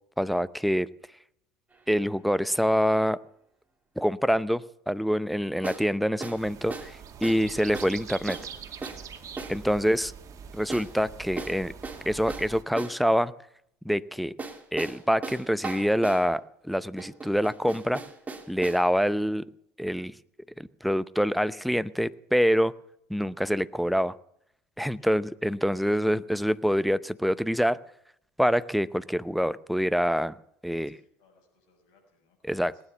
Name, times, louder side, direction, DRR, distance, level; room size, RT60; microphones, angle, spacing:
voice 1, 0.2-0.9 1.9-3.2 4.0-8.4 9.5-10.1 10.5-11.7 12.1-13.3 13.8-14.3 14.7-18.0 18.5-19.5 19.8-20.2 20.6-22.7 23.1-24.1 24.8-27.8 28.4-30.4 30.6-31.0 32.4-32.7, equal, ahead, 15 dB, 0.7 m, -26 dB
sound 1, 1.7-1.8 5.6-5.9 6.2-6.4 6.7-6.9 7.2-7.4 7.7-8.0 8.3-8.5 8.8-9.0 9.4-9.6 10.7-10.9 11.4-13.0 14.4-16.3 17.0-18.8, right 3 dB, 20° right, 2.8 m, -37 dB
sound 2, 6.4-12.6, right 7 dB, 45° right, 2.2 m, -44 dB
voice 2, 30.7-32.8, left 4 dB, 70° left, 4 dB, 6.7 m, -66 dB
19.5 x 9.8 x 7.0 m, 0.74 s
hypercardioid pair, 70°, 8 cm